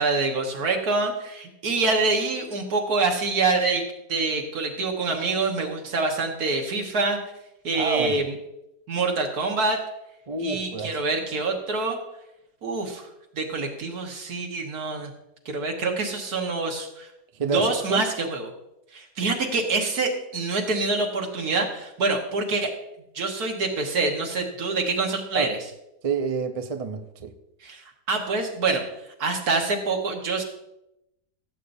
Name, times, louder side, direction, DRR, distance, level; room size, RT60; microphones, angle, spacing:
voice 1, 0.0-7.2 7.6-8.3 8.9-9.8 10.4-12.0 12.6-13.1 13.3-15.1 15.5-17.1 17.4-18.5 18.9-22.7 23.1-25.6 27.6-28.8 29.2-30.4, right 3 dB, 70° right, 2 dB, 1.9 m, -26 dB
voice 2, 7.7-8.2 10.3-11.0 17.3-18.0 25.3-25.5 26.0-27.3, right 4 dB, 50° right, 7 dB, 0.4 m, -28 dB
15.5 x 8.4 x 2.7 m, 0.87 s
omnidirectional pair, 1.7 m